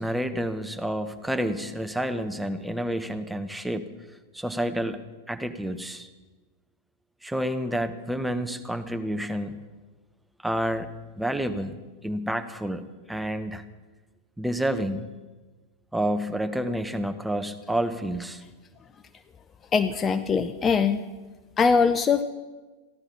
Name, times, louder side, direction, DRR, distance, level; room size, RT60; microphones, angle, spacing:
voice 1, 0.0-3.9 4.3-5.0 5.3-6.1 7.2-9.6 10.4-10.9 11.2-11.8 12.0-13.6 14.4-15.1 15.9-18.4, right 1 dB, 5° right, 8 dB, 0.9 m, -29 dB
voice 2, 19.7-21.0 21.6-22.2, left 5 dB, 20° left, 11 dB, 0.6 m, -22 dB
15.0 x 12.0 x 5.9 m, 1.3 s
figure-of-eight pair, 90°, 0 cm